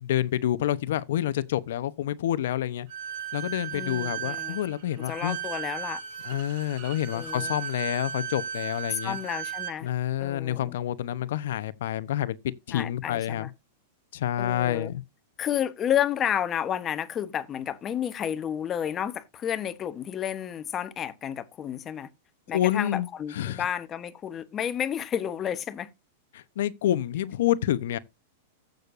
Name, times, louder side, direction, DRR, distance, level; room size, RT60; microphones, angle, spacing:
voice 1, 0.0-2.9 3.3-5.4 6.2-9.2 9.8-12.4 12.7-13.5 14.1-15.0 22.5-23.6 26.3-28.0, left 12 dB, 70° left, 0.9 m, -28 dB
Bowed string instrument, 2.9-9.8, right 8 dB, 65° right, 5.3 m, -36 dB
voice 2, 3.7-4.6 5.1-6.0 7.1-7.6 8.9-9.9 10.2-10.8 12.7-13.5 14.4-14.9 15.4-22.1 22.5-25.9, left 9 dB, 25° left, 1.0 m, -31 dB
15.0 x 6.6 x 2.6 m
supercardioid pair, 145°, 0 cm